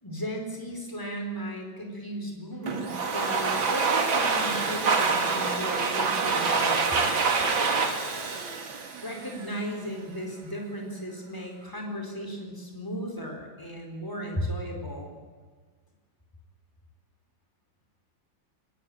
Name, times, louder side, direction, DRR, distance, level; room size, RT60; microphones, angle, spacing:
voice 1, 0.0-7.3 9.0-15.1, equal, 10° left, 2 dB, 4.6 m, -36 dB
Domestic sounds home sounds, 2.7-9.6, right 4 dB, 80° right, 3.0 m, -26 dB
23.0 x 20.5 x 9.0 m, 1.5 s
omnidirectional pair, 2.1 m